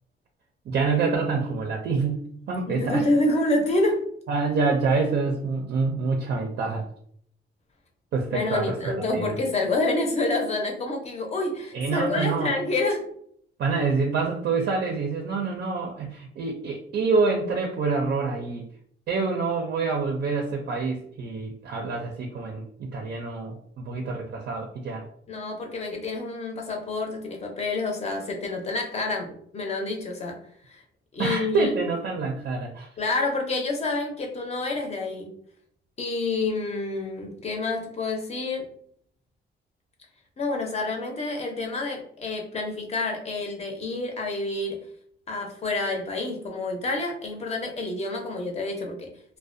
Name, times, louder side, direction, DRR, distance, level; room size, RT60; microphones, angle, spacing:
voice 1, 0.7-3.1 4.3-6.9 8.1-9.4 11.7-12.5 13.6-18.7 19.1-25.1 31.2-32.9, right 4 dB, 55° right, 2 dB, 0.4 m, -27 dB
voice 2, 2.7-4.0 8.3-13.0 25.3-30.4 30.7-30.8 31.1-31.8 33.0-35.3 36.0-38.7 40.4-44.8 45.3-49.1, left 2 dB, 35° left, 2 dB, 0.6 m, -28 dB
2.4 x 2.1 x 2.5 m, 0.65 s
cardioid pair, 120°, 20 cm